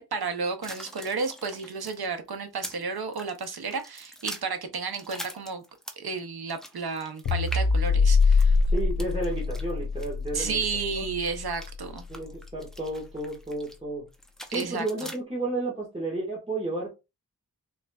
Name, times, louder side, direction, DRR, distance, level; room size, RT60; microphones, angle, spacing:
voice 1, 0.0-5.6 6.0-8.6 10.3-12.0 14.5-15.1, right 4 dB, 75° right, 0.7 m, -32 dB
sound 1, 0.6-2.8 3.1-6.1 6.5-13.8 14.1-15.2, equal, ahead, 0.6 m, -44 dB
sound 2, 7.3-11.7, left 4 dB, 80° left, 0.7 m, -24 dB
voice 2, 8.7-10.6 10.9-11.0 12.1-14.0 14.5-16.9, right 2 dB, 15° right, 1.4 m, -32 dB
3.8 x 3.1 x 2.3 m
wide cardioid pair, 85°, 38 cm